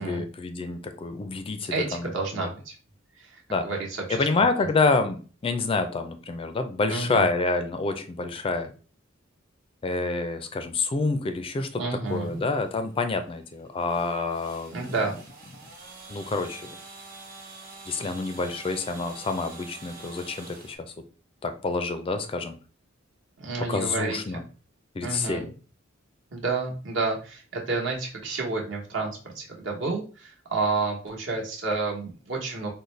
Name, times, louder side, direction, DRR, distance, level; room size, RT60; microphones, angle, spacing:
voice 1, 0.0-2.5 3.5-3.7 4.1-8.7 9.8-11.8 12.1-15.0 16.1-16.7 17.9-20.8 21.4-22.6 23.7-24.4 25.0-25.5, left 3 dB, 25° left, 8 dB, 0.3 m, -28 dB
voice 2, 1.7-2.7 3.2-3.4 3.6-4.7 6.9-7.2 11.8-12.4 14.7-15.1 23.4-24.2 25.0-25.4 26.3-32.7, right 3 dB, 70° right, -1 dB, 1.0 m, -30 dB
sound 1, 12.0-20.8, right 3 dB, 45° right, 1.2 m, -46 dB
3.9 x 2.1 x 3.1 m, 0.37 s
head